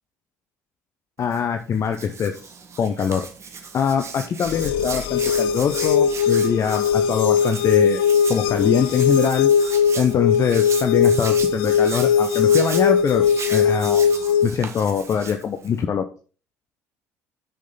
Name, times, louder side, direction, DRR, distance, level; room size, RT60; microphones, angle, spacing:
voice 1, 1.2-2.4 2.8-3.3 3.6-8.0 8.3-9.5 9.9-13.2 13.5-14.1 14.4-16.1, left 7 dB, 40° left, 7 dB, 0.8 m, -23 dB
Hands, 1.2-15.8, right 5 dB, 40° right, 1.6 m, -37 dB
sound 1, 4.5-14.5, left 7 dB, 65° left, 0.5 m, -19 dB
10.0 x 6.5 x 4.0 m, 0.38 s
figure-of-eight pair, 55°, 8 cm